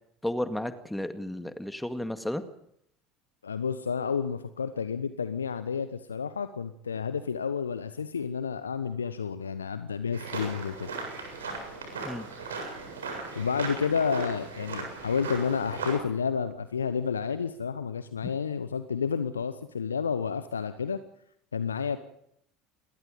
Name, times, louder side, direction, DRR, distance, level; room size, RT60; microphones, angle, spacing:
voice 1, 0.2-2.4 12.0-12.3, left 1 dB, 5° left, 9 dB, 2.0 m, -33 dB
voice 2, 3.4-10.9 13.3-21.0 21.5-22.0, left 6 dB, 80° left, 12 dB, 1.0 m, -30 dB
sound 1, 10.1-16.0, right 3 dB, 75° right, 7.8 m, -37 dB
28.5 x 22.0 x 5.3 m, 0.72 s
figure-of-eight pair, 70°, 0 cm